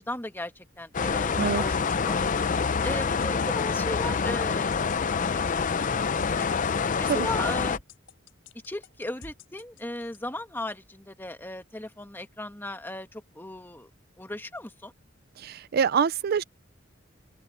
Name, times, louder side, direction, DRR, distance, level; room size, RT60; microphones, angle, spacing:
voice 1, 0.0-2.2 2.8-4.9 5.2-6.5 7.0-7.8 8.6-13.9 14.2-14.9, left 1 dB, 10° left, 1.5 m, -37 dB
sound 1, 0.9-7.8, left 5 dB, 40° left, 0.5 m, -26 dB
sound 2, 1.3-10.2, left 3 dB, 90° left, 4.1 m, -47 dB
voice 2, 15.4-16.4, right 6 dB, 50° right, 0.4 m, -25 dB
open air
head